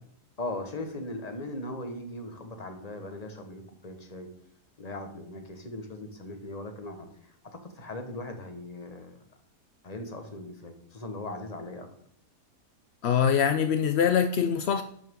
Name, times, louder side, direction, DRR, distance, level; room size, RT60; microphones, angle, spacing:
voice 1, 0.4-4.3 4.8-7.1 7.6-9.2 9.8-11.9, left 2 dB, 25° left, 5 dB, 1.2 m, -39 dB
voice 2, 13.0-14.8, left 8 dB, 70° left, 9 dB, 0.6 m, -23 dB
11.5 x 6.5 x 3.7 m, 0.65 s
omnidirectional pair, 1.7 m